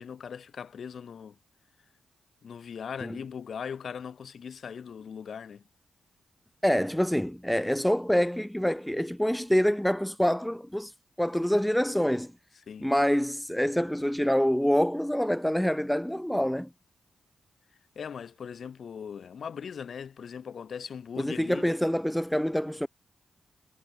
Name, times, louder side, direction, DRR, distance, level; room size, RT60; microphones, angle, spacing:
voice 1, 0.0-1.4 2.4-5.6 12.7-12.9 18.0-21.7, left 7 dB, 65° left, 2.4 m, -39 dB
voice 2, 6.6-10.9 11.2-12.3 12.8-16.7 21.2-22.9, equal, 5° left, 0.4 m, -26 dB
supercardioid pair, 55°, 0 cm